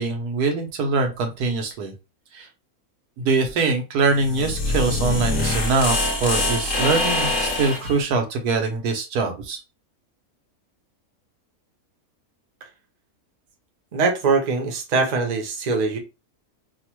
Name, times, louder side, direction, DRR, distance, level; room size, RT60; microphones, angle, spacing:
voice 1, 0.0-1.9 2.3-2.5 3.2-9.6, right 3 dB, 85° right, 1.3 m, -23 dB
sound 1, 4.1-7.9, left 2 dB, 45° left, 0.8 m, -24 dB
voice 2, 13.9-16.0, right 4 dB, 45° right, 0.5 m, -22 dB
3.0 x 2.1 x 2.9 m
omnidirectional pair, 1.6 m